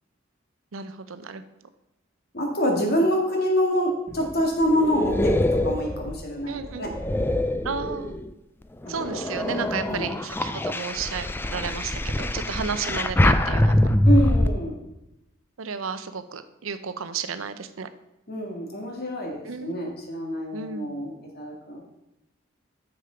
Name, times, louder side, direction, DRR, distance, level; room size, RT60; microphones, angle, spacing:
voice 1, 0.7-1.4 6.5-6.9 7.6-8.2 8.9-13.9 15.6-17.9 19.4-19.8 20.5-21.0, right 6 dB, 85° right, 11 dB, 0.6 m, -33 dB
voice 2, 2.3-6.9 8.8-8.9 9.5-10.1 14.0-14.8 18.3-21.8, equal, 50° left, 1 dB, 1.9 m, -26 dB
sound 1, 4.1-8.3 8.8-14.5, left 1 dB, 10° left, 0.4 m, -24 dB
7.2 x 6.6 x 5.0 m, 0.92 s
head